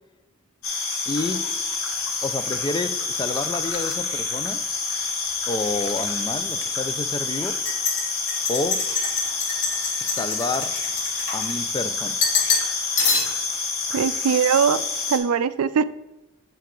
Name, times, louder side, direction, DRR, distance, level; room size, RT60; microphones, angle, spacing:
sound 1, 0.6-15.2, left 4 dB, 70° left, 1.3 m, -28 dB
voice 1, 1.1-1.5 2.2-4.6 5.5-7.6 8.5-8.9 10.0-10.8 11.3-12.4, left 2 dB, 20° left, 0.4 m, -29 dB
sound 2, 1.2-5.1 5.4-6.1 6.6-6.7 7.4-11.8 12.2-12.7 13.0-13.6, left 4 dB, 55° left, 1.0 m, -28 dB
voice 2, 13.9-14.8 15.1-15.8, right 7 dB, 85° right, 0.4 m, -21 dB
8.3 x 4.6 x 3.8 m
head